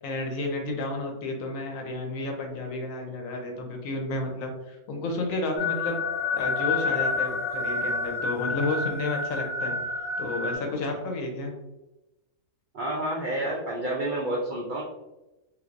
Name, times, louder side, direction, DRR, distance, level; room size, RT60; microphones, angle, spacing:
voice 1, 0.0-6.0 6.3-9.8 10.2-11.5, left 2 dB, 75° left, 2 dB, 1.1 m, -31 dB
sound 1, 5.6-10.5, left 4 dB, 25° left, 0.7 m, -29 dB
voice 2, 12.7-14.8, right 1 dB, 70° right, -3 dB, 0.4 m, -29 dB
3.2 x 2.7 x 2.5 m, 1.0 s
omnidirectional pair, 1.4 m